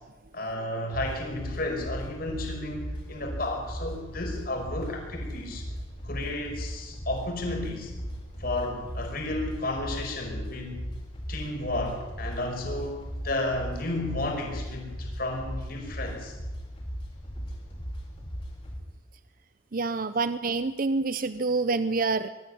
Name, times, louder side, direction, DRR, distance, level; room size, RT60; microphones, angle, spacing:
voice 1, 0.3-5.7 6.0-7.9 8.4-10.8 11.3-16.3, left 2 dB, 45° left, 2 dB, 5.2 m, -32 dB
sound 1, 0.9-18.8, equal, 25° left, 4.2 m, -37 dB
voice 2, 19.7-22.3, right 3 dB, 45° right, 13 dB, 0.6 m, -27 dB
23.0 x 14.0 x 9.9 m, 1.2 s
head